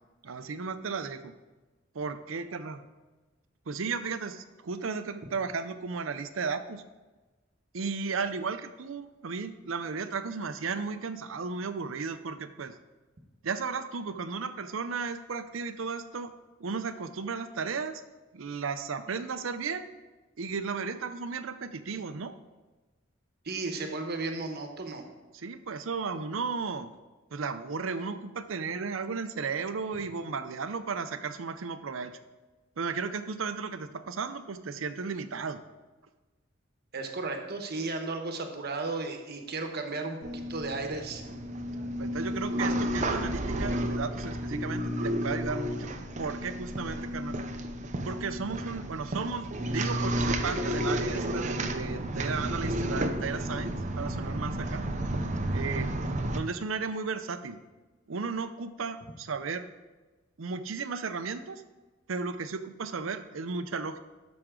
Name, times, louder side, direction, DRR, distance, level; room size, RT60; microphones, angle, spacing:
voice 1, 0.2-1.3 1.9-2.8 3.7-6.8 7.7-12.7 13.4-16.3 16.6-18.0 18.3-19.9 20.4-22.3 25.3-26.9 27.3-32.1 32.8-35.6 42.0-45.9 46.2-47.4 48.1-54.8 55.5-55.9 56.3-57.6 58.1-59.7 60.4-61.6 62.1-64.0, right 5 dB, 80° right, 10 dB, 0.6 m, -34 dB
voice 2, 23.4-25.0 36.9-41.2, right 3 dB, 55° right, 4 dB, 1.1 m, -34 dB
sound 1, 40.2-56.4, right 1 dB, 40° right, 0.7 m, -32 dB
12.5 x 6.1 x 3.8 m, 1.2 s
head